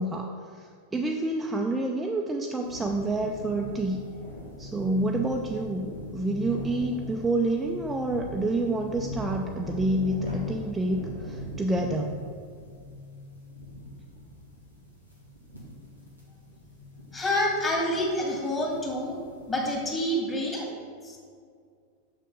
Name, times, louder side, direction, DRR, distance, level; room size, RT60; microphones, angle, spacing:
voice 1, 0.0-4.0 4.6-12.2, right 2 dB, 10° right, 1 dB, 0.5 m, -28 dB
sound 1, 2.6-19.8, left 1 dB, 90° left, 2.0 m, -41 dB
voice 2, 17.1-19.2 19.5-20.7 21.0-21.2, left 1 dB, 20° left, -1 dB, 2.0 m, -27 dB
6.5 x 6.5 x 5.2 m, 2.2 s
figure-of-eight pair, 90°, 0 cm